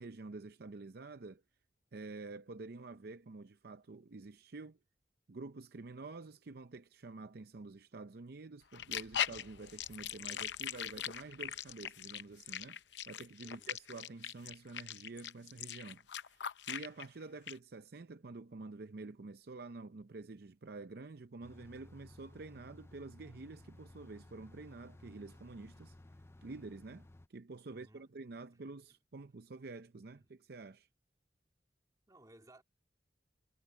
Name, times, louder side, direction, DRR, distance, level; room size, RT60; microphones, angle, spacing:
voice 1, 0.0-1.4 1.9-4.8 5.3-12.8 13.1-26.0 26.4-30.9, right 3 dB, 60° right, 0.6 m, -49 dB
sound 1, 8.7-17.1 17.5-17.6, left 10 dB, 80° left, 0.6 m, -40 dB
voice 2, 13.4-13.8 27.7-28.6 29.2-29.3 30.1-30.3 32.1-32.6, right 1 dB, 20° right, 2.5 m, -62 dB
sound 2, 21.4-27.3, left 1 dB, 15° left, 0.4 m, -57 dB
head